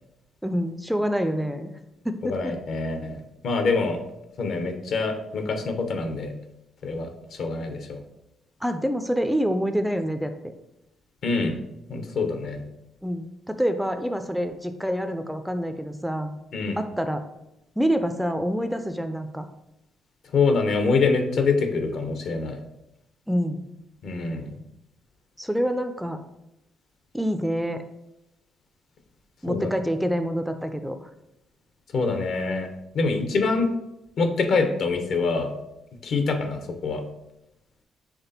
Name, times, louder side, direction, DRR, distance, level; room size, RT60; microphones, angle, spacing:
voice 1, 0.4-1.7 2.0-2.5 8.6-10.5 13.0-16.4 16.8-17.2 17.8-19.5 23.3-23.7 25.4-26.2 27.1-27.8 29.4-31.1, equal, ahead, 8 dB, 0.3 m, -27 dB
voice 2, 2.2-3.1 3.4-4.0 4.4-6.3 6.8-7.1 7.4-8.0 11.2-11.6 11.9-12.6 16.5-16.8 20.3-22.6 24.0-24.5 29.5-29.7 31.9-32.7 32.9-33.7 34.2-35.5 36.0-37.0, left 4 dB, 65° left, 6 dB, 0.7 m, -25 dB
5.9 x 3.2 x 2.7 m, 0.87 s
cardioid pair, 90°, 0 cm